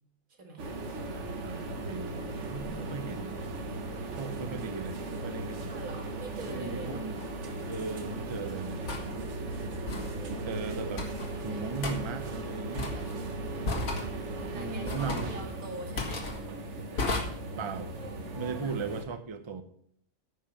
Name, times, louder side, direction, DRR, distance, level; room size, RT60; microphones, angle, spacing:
voice 1, 0.3-0.6 2.7-3.2 5.7-7.0 9.8-10.4 14.2-16.3 18.6-18.7, right 2 dB, 85° right, 3 dB, 2.3 m, -45 dB
sound 1, 0.6-19.0, right 2 dB, 60° right, 1.5 m, -37 dB
voice 2, 1.0-3.4 4.2-5.7 6.4-7.2 7.7-8.9 10.5-11.1 11.4-13.0 14.5-15.3 17.6-17.9 18.4-19.6, right 4 dB, 25° right, 9 dB, 0.7 m, -37 dB
sound 2, 7.2-7.3 8.9-9.1 9.9-10.1 11.0-11.3 11.8-12.0 12.8-13.2 13.6-14.1 14.9-15.3 16.0-16.4 17.0-17.2, left 3 dB, 80° left, 2.1 m, -33 dB
9.8 x 6.0 x 7.0 m, 0.65 s
omnidirectional pair, 1.4 m